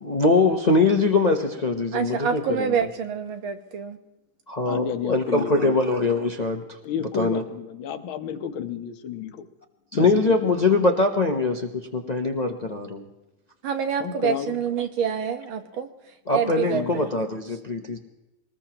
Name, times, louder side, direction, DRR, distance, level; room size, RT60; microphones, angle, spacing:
voice 1, 0.0-2.8 4.5-6.8 7.2-7.4 9.9-13.0 16.3-18.0, left 3 dB, 45° left, 3 dB, 0.5 m, -22 dB
voice 2, 1.9-4.0 13.6-15.9 16.3-17.1, right 7 dB, 85° right, 7 dB, 2.0 m, -27 dB
voice 3, 4.7-5.8 6.8-9.5 9.9-10.6 14.0-14.6 16.7-17.0, left 8 dB, 90° left, 8 dB, 1.8 m, -31 dB
24.0 x 20.0 x 2.9 m, 1.0 s
omnidirectional pair, 2.1 m